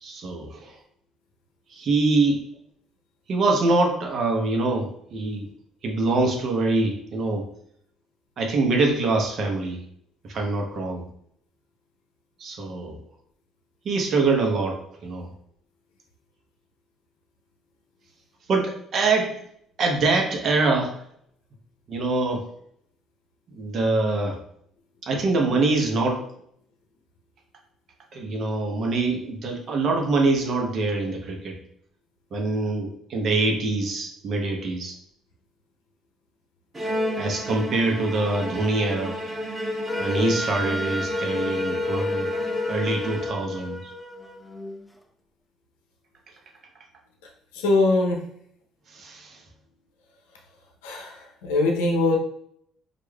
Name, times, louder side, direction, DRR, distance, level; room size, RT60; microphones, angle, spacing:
voice 1, 0.0-0.6 1.7-2.4 3.3-5.5 5.8-7.4 8.4-9.8 10.3-11.0 12.4-12.9 13.8-14.8 15.0-15.3 18.5-19.4 19.8-20.9 21.9-22.4 23.5-24.4 25.0-26.2 28.1-31.6 32.3-34.9 37.2-39.2 40.0-42.3 42.7-43.8 48.9-49.3, right 3 dB, 55° right, 2 dB, 0.9 m, -24 dB
Bowed string instrument, 36.7-43.7, equal, 30° right, 1.3 m, -32 dB
Wind instrument woodwind instrument, 39.9-44.8, left 2 dB, 10° left, 0.5 m, -30 dB
voice 2, 47.5-48.2 50.8-52.2, left 2 dB, 80° left, 1 dB, 0.6 m, -22 dB
4.6 x 2.5 x 2.2 m, 0.68 s
hypercardioid pair, 55°, 0 cm